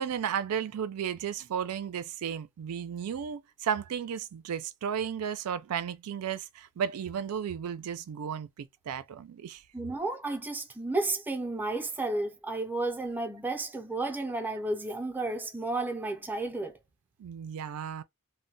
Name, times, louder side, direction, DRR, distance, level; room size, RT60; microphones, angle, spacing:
voice 1, 0.0-9.6 17.2-18.0, right 8 dB, 80° right, 0.4 m, -34 dB
voice 2, 9.7-16.8, right 2 dB, 10° right, 0.5 m, -32 dB
2.2 x 2.0 x 3.8 m
head